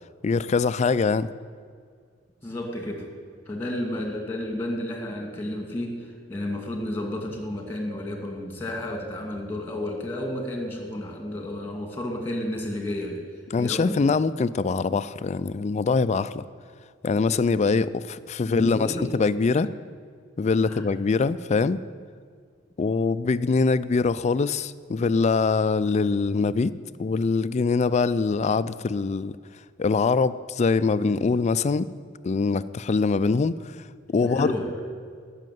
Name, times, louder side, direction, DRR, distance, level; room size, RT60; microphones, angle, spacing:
voice 1, 0.2-1.3 13.5-16.4 17.0-19.7 20.4-21.8 22.8-29.3 29.8-31.9 32.2-33.8 34.1-34.5, left 4 dB, 35° left, 15 dB, 0.4 m, -23 dB
voice 2, 2.4-3.1 3.5-13.2 13.6-14.0 18.4-19.0 20.7-20.8 34.2-34.7, left 1 dB, 15° left, 2 dB, 2.2 m, -31 dB
13.0 x 6.5 x 9.3 m, 2.1 s
head